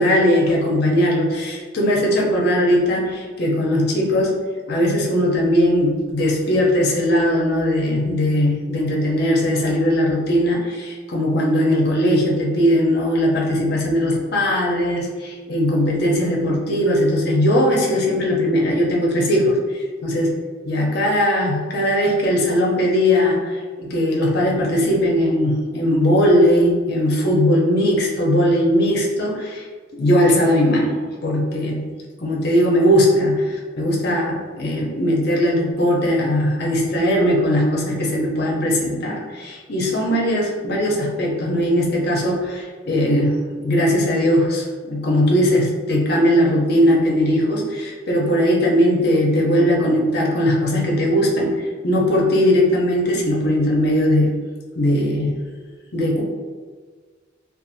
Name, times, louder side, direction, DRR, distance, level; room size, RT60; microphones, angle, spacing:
voice 1, 0.0-4.4 4.7-20.3 20.6-29.6 29.9-31.0 31.2-31.8 32.2-54.3 54.8-55.3 55.9-56.2, equal, 50° left, -2 dB, 0.5 m, -19 dB
2.5 x 2.3 x 2.5 m, 1.5 s
head